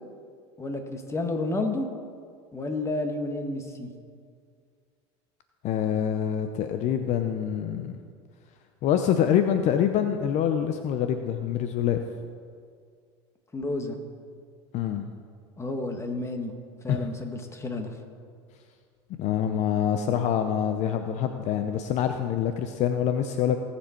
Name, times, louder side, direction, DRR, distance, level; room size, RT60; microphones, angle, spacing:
voice 1, 0.6-1.9 2.5-3.9 13.5-14.0 15.6-16.5 16.8-17.9, left 2 dB, 20° left, 4 dB, 1.7 m, -31 dB
voice 2, 5.6-8.0 8.8-12.0 14.7-15.1 16.9-17.0 19.2-23.6, left 9 dB, 55° left, 7 dB, 0.7 m, -25 dB
17.5 x 7.2 x 4.5 m, 2.1 s
hypercardioid pair, 90°, 14 cm